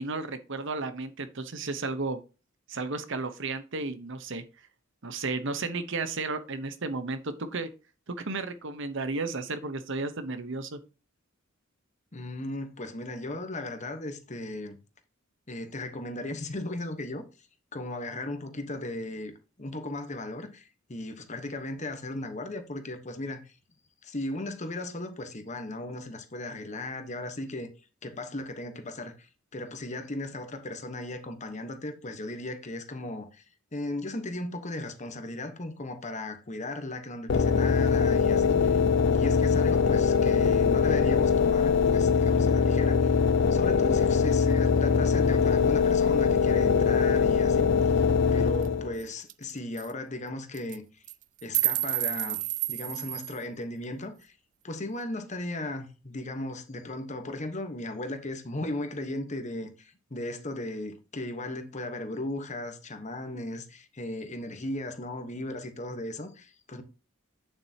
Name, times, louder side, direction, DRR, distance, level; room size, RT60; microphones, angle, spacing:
voice 1, 0.0-2.2 2.7-4.4 5.0-7.7 8.1-10.8, right 3 dB, 65° right, 1.0 m, -33 dB
voice 2, 12.1-14.8 15.5-17.3 17.7-23.5 24.0-27.7 28.0-33.4 33.7-38.8 39.1-43.1 43.5-47.7 48.3-50.8 51.4-54.3 54.6-66.8, left 2 dB, 35° left, 1.2 m, -36 dB
sound 1, 37.3-49.0, left 6 dB, 60° left, 0.5 m, -22 dB
sound 2, 48.6-48.7 49.0-49.1 49.3-49.5 49.8-49.9 50.5-50.8 51.1-53.4, right 16 dB, 40° right, 0.3 m, -30 dB
8.8 x 7.5 x 2.9 m
head